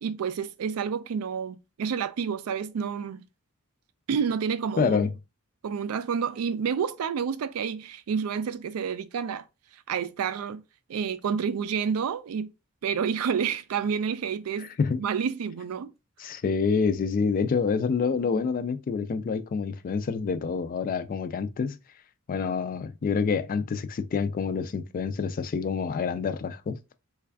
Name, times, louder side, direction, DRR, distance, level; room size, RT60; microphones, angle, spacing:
voice 1, 0.0-3.3 4.1-5.1 5.6-9.5 9.9-10.6 10.9-12.5 12.8-14.7 15.0-15.9, right 7 dB, 80° right, 0.4 m, -29 dB
voice 2, 4.8-5.1 14.6-15.0 16.2-21.8 22.3-26.8, left 5 dB, 40° left, 0.3 m, -27 dB
3.3 x 2.3 x 3.4 m
head